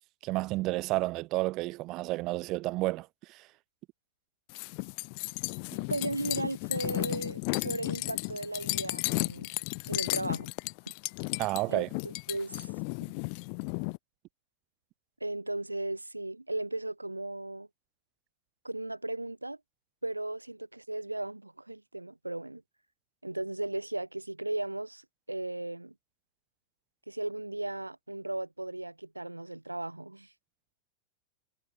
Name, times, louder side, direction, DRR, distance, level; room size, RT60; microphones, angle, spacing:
voice 1, 0.2-3.5 11.4-11.9, right 20 dB, 40° right, 0.7 m, -31 dB
sound 1, 4.5-14.0, left 40 dB or more, 45° left, 0.6 m, -34 dB
voice 2, 5.9-9.5 9.9-10.5 11.7-12.7 15.2-17.7 18.6-19.6 20.0-22.6 23.2-25.9 27.1-30.3, right 2 dB, 85° right, 1.5 m, -36 dB
figure-of-eight pair, 90°, 0 cm